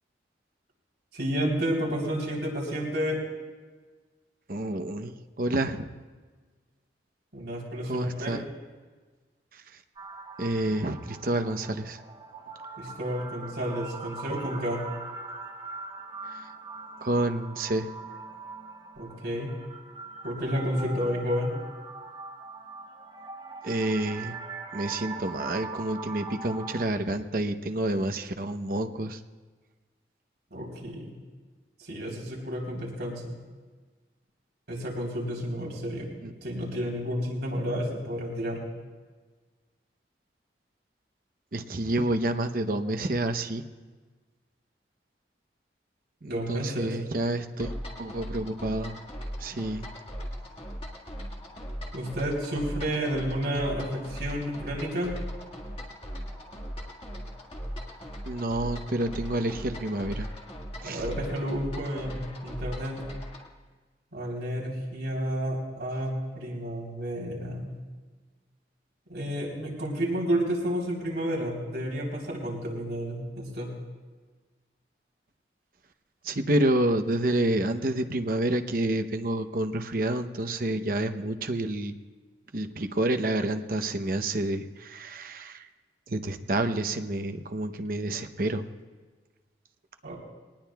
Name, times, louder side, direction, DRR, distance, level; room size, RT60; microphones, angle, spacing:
voice 1, 1.1-3.2 7.3-8.4 12.8-14.8 19.0-19.5 20.2-21.5 30.5-31.1 31.8-33.4 34.7-36.1 36.4-38.6 46.3-47.0 51.9-55.1 60.8-63.0 64.1-67.7 69.1-73.7 90.0-90.2, equal, 70° right, -2 dB, 3.6 m, -31 dB
voice 2, 4.5-5.9 7.9-8.4 10.4-12.0 17.0-17.9 23.6-24.4 24.7-29.2 36.2-36.3 41.5-43.6 46.2-47.7 48.0-49.0 49.4-49.8 58.3-60.3 60.8-61.0 76.2-81.9 82.5-85.7 86.1-88.7, right 1 dB, 50° right, 8 dB, 0.8 m, -29 dB
sound 1, 10.0-26.8, right 4 dB, 25° right, 1.2 m, -42 dB
sound 2, 47.6-63.5, equal, 30° left, 1.8 m, -39 dB
21.5 x 19.0 x 2.3 m, 1.4 s
head